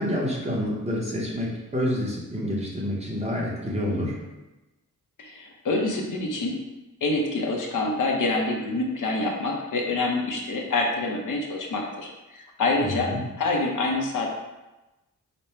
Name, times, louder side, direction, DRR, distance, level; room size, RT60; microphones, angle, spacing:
voice 1, 0.0-4.2 12.8-13.2, equal, 20° right, -4 dB, 0.8 m, -28 dB
voice 2, 5.2-6.6 7.0-13.1 13.4-14.3, left 2 dB, 70° left, 0 dB, 0.8 m, -26 dB
5.2 x 2.1 x 4.3 m, 1.0 s
wide cardioid pair, 165°, 33 cm